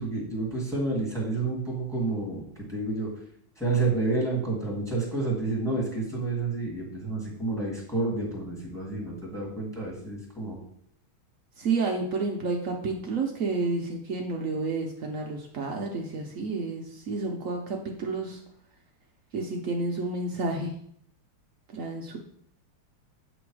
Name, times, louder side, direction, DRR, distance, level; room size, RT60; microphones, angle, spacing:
voice 1, 0.0-2.4 2.7-3.1 3.6-10.6, right 3 dB, ahead, -3 dB, 1.6 m, -29 dB
voice 2, 11.6-18.4 19.3-20.7 21.7-22.2, right 3 dB, 85° right, 1 dB, 0.7 m, -30 dB
7.7 x 3.0 x 4.7 m, 0.67 s
omnidirectional pair, 2.3 m